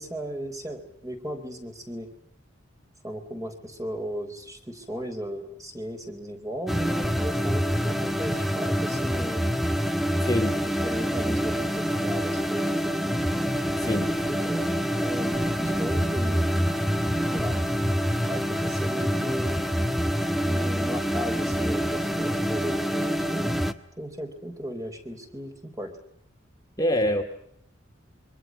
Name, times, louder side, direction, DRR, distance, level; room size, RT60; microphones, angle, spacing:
voice 1, 0.0-2.1 3.0-9.4 10.6-13.0 13.8-16.5 17.3-17.6 18.2-19.7 20.4-23.6 24.0-25.9, equal, 15° right, 4 dB, 4.3 m, -36 dB
sound 1, 6.7-23.7, equal, ahead, 1.3 m, -26 dB
voice 2, 10.2-10.6 13.8-14.1 26.8-27.2, left 1 dB, 20° left, 3 dB, 2.3 m, -24 dB
28.0 x 24.0 x 6.4 m, 0.69 s
head